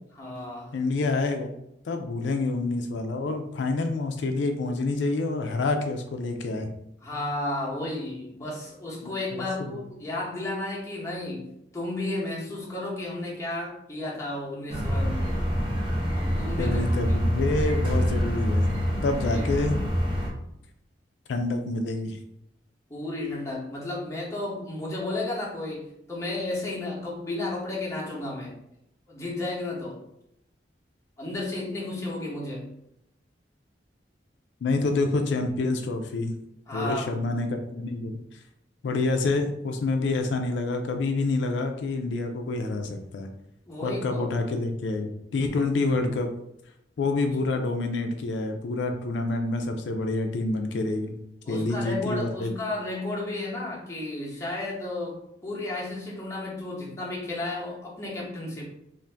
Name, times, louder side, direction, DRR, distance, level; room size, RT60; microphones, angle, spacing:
voice 1, 0.1-0.7 7.0-11.5 11.7-15.4 16.1-16.8 19.3-19.7 22.9-28.5 29.1-30.0 31.2-32.7 36.7-37.3 43.7-44.2 51.4-58.6, left 2 dB, 15° left, -5 dB, 0.8 m, -33 dB
voice 2, 0.7-1.5 1.9-6.7 9.3-9.8 16.6-18.7 19.0-19.7 21.3-22.2 34.6-36.3 36.7-38.1 38.8-43.3 43.8-46.3 47.0-51.1 51.5-52.5, left 3 dB, 80° left, 5 dB, 0.4 m, -27 dB
sound 1, 14.7-20.3, equal, 30° right, 0.6 m, -26 dB
2.5 x 2.5 x 3.3 m, 0.79 s
head